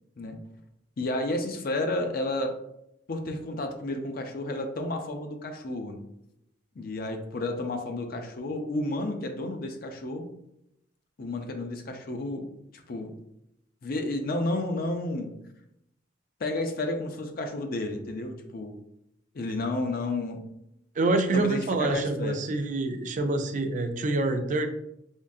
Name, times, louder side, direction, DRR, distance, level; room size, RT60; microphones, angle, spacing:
voice 1, 1.0-2.6 3.1-6.0 6.8-10.3 11.2-12.5 12.9-13.1 13.8-15.3 16.4-18.8 19.3-20.4 21.3-22.4, left 2 dB, 50° left, 4 dB, 0.5 m, -31 dB
voice 2, 21.0-24.7, right 2 dB, 40° right, 7 dB, 0.4 m, -26 dB
3.6 x 3.1 x 2.6 m, 0.80 s
head